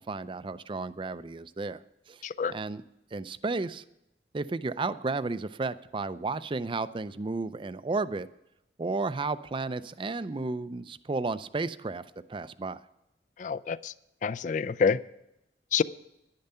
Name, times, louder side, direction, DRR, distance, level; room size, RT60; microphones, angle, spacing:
voice 1, 0.1-2.8 3.1-3.8 4.3-8.3 8.8-12.8, right 3 dB, 30° right, 15 dB, 0.4 m, -33 dB
voice 2, 13.4-13.9 14.2-15.0 15.7-15.8, left 6 dB, 45° left, 17 dB, 0.4 m, -27 dB
11.0 x 10.5 x 5.5 m, 0.85 s
head